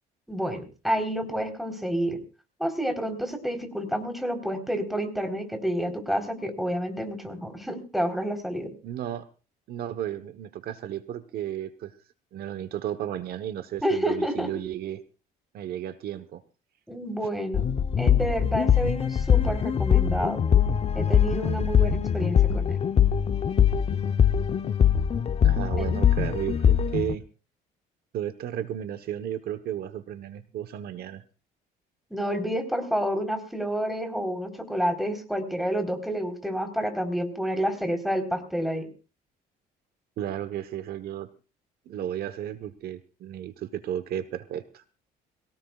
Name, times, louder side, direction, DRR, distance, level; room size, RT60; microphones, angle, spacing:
voice 1, 0.3-2.2 2.6-8.7 13.8-14.5 16.9-17.7 18.0-20.4 20.9-22.8 25.8-25.9 32.1-38.9, equal, ahead, 6 dB, 3.9 m, -29 dB
voice 2, 8.8-9.3 9.7-11.9 12.3-15.0 15.5-16.4 25.4-27.2 28.1-31.2 40.2-41.3 41.9-44.8, right 11 dB, 65° right, 11 dB, 1.2 m, -33 dB
sound 1, 17.5-27.1, left 8 dB, 40° left, 0.8 m, -22 dB
22.5 x 17.5 x 2.4 m, 0.34 s
cardioid pair, 110°, 17 cm